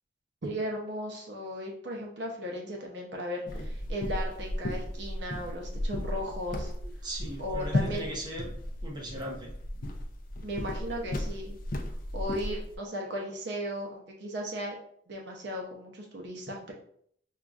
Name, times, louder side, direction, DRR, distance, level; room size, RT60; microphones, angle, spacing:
voice 1, 0.4-6.7 7.4-8.1 10.4-11.6 12.1-14.7 15.1-16.7, equal, 65° right, 0 dB, 0.7 m, -36 dB
sound 1, 3.5-12.8, left 1 dB, 50° left, 0.5 m, -35 dB
voice 2, 7.0-8.5 8.8-9.5, right 1 dB, 25° right, -2 dB, 0.8 m, -38 dB
5.4 x 2.4 x 2.4 m, 0.65 s
head